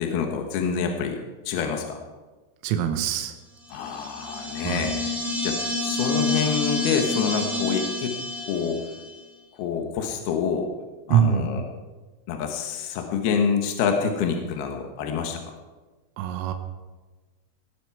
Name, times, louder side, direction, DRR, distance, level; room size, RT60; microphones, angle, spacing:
voice 1, 0.0-2.0 3.7-5.2 5.4-8.2 8.5-8.8 9.6-10.7 11.1-11.6 12.3-15.5, left 6 dB, 65° left, 3 dB, 2.7 m, -27 dB
voice 2, 2.6-3.3 4.6-4.9 11.1-11.5 16.2-16.5, right 9 dB, 85° right, 7 dB, 3.6 m, -23 dB
sound 1, 3.7-9.1, left 3 dB, ahead, 1.3 m, -28 dB
19.0 x 12.5 x 4.7 m, 1.3 s
omnidirectional pair, 5.9 m